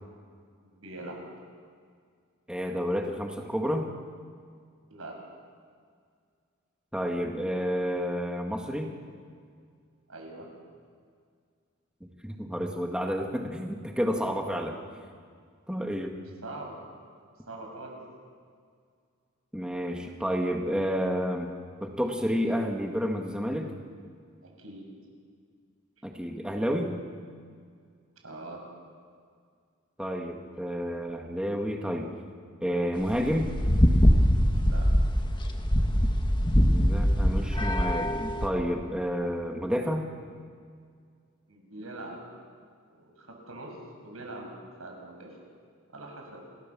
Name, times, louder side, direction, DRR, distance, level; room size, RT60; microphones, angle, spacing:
voice 1, 0.6-1.2 4.9-5.2 10.1-10.5 16.4-16.8 17.5-18.0 24.4-24.9 28.2-28.6 34.5-34.9 41.5-42.2 42.9-45.4 45.9-46.4, right 2 dB, 90° right, 1 dB, 6.4 m, -43 dB
voice 2, 2.5-3.9 6.9-8.9 12.0-14.8 15.7-16.2 19.5-23.7 26.0-27.0 30.0-32.1 32.6-33.5 36.7-40.1, equal, 5° right, 2 dB, 1.7 m, -30 dB
sound 1, 33.0-38.5, equal, 25° left, 1.7 m, -23 dB
28.5 x 17.5 x 7.4 m, 2.1 s
head